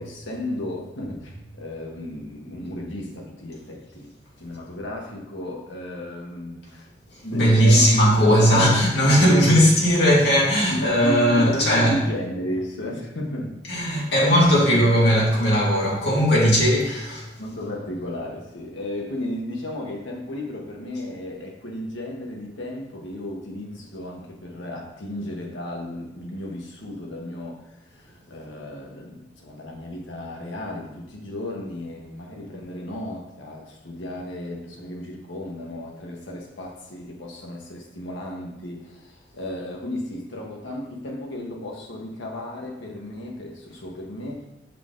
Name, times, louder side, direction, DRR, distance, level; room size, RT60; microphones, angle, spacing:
voice 1, 0.0-4.1 4.4-6.9 7.2-7.9 8.2-9.2 10.7-14.7 17.4-44.5, left 1 dB, 85° left, 1.1 m, -34 dB
voice 2, 7.3-12.0 13.7-17.3, equal, 65° left, 2.0 m, -18 dB
6.4 x 5.0 x 3.7 m
head